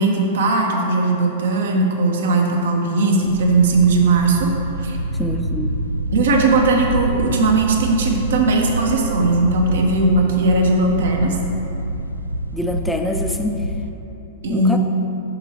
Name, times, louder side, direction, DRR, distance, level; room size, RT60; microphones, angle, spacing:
voice 1, 0.0-4.5 4.8-5.0 6.1-11.4 14.4-14.8, right 3 dB, 60° right, 1 dB, 0.9 m, -18 dB
sound 1, 3.2-13.9, right 1 dB, 85° right, 0.3 m, -26 dB
voice 2, 5.2-5.7 12.5-13.7 14.5-14.8, left 1 dB, 5° left, 4 dB, 0.5 m, -24 dB
8.0 x 6.4 x 2.9 m, 2.9 s
figure-of-eight pair, 100°, 0 cm